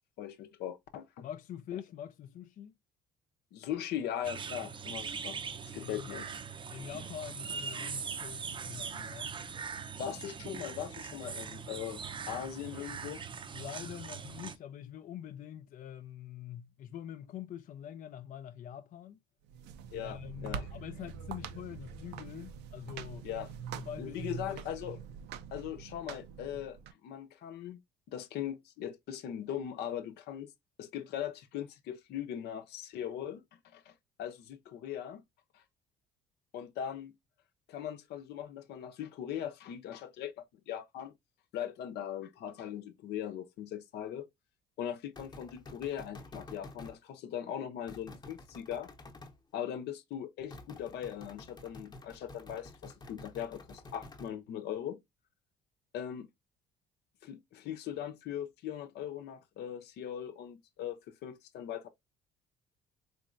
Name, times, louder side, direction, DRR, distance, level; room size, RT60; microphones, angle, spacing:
voice 1, 0.2-1.3 3.5-5.4 5.7-6.3 10.0-13.2 19.9-20.7 23.2-23.5 24.0-25.0 25.5-27.8 28.1-30.5 30.8-35.2 35.5-35.6 36.5-37.1 37.7-41.1 41.5-44.3 44.8-48.9 49.5-55.0 55.9-56.3 57.2-61.9, left 10 dB, 75° left, 0.8 m, -40 dB
voice 2, 1.2-2.7 5.8-6.1 6.7-9.3 13.5-19.2 20.0-23.3 23.7-24.6, left 10 dB, 50° left, 0.4 m, -45 dB
sound 1, 4.2-14.6, right 6 dB, 30° right, 0.5 m, -41 dB
sound 2, 19.4-26.9, right 8 dB, 85° right, 0.6 m, -44 dB
sound 3, 45.2-47.0 47.9-49.4 50.5-54.3, left 2 dB, 25° left, 0.9 m, -50 dB
4.2 x 3.2 x 2.5 m
cardioid pair, 110°, 17 cm